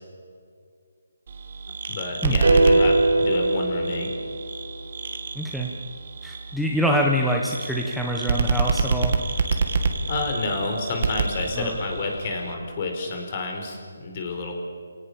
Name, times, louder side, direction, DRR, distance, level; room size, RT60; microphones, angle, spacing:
sound 1, 1.3-12.5, right 4 dB, 50° right, 2.3 m, -28 dB
voice 1, 1.9-4.1 10.1-14.5, left 3 dB, 35° left, 3 dB, 5.0 m, -29 dB
sound 2, 2.4-4.7, right 2 dB, 90° right, 3.3 m, -20 dB
voice 2, 5.3-5.7 6.2-9.1 11.6-11.8, equal, ahead, -2 dB, 1.3 m, -25 dB
29.0 x 18.0 x 7.2 m, 2.2 s
hypercardioid pair, 160°, 0 cm